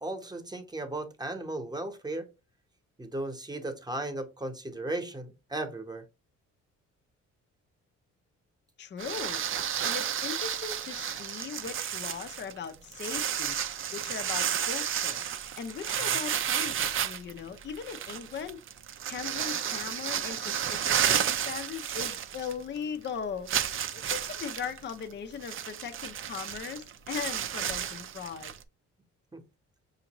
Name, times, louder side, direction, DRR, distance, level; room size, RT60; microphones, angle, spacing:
voice 1, 0.0-2.3 3.0-6.0 16.0-16.2 29.3-29.4, right 2 dB, 15° right, 0.9 m, -36 dB
voice 2, 8.8-9.4 9.8-13.6 13.9-15.2 15.6-18.6 19.1-28.5, left 7 dB, 35° left, 0.5 m, -39 dB
sound 1, 9.0-22.8 23.0-23.1 23.5-28.6, right 9 dB, 45° right, 0.5 m, -32 dB
5.6 x 2.6 x 2.9 m
cardioid pair, 90°, 30 cm